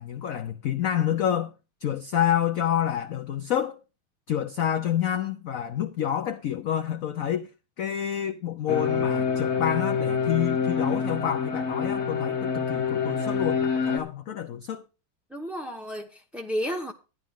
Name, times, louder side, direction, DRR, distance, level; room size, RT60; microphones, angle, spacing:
voice 1, 0.0-1.5 1.8-3.8 4.3-7.5 7.8-14.8, left 10 dB, 60° left, 0.9 m, -28 dB
sound 1, 8.7-14.0, left 6 dB, 35° left, 1.6 m, -26 dB
voice 2, 15.3-16.9, equal, ahead, 0.5 m, -32 dB
12.5 x 10.5 x 3.6 m
omnidirectional pair, 2.2 m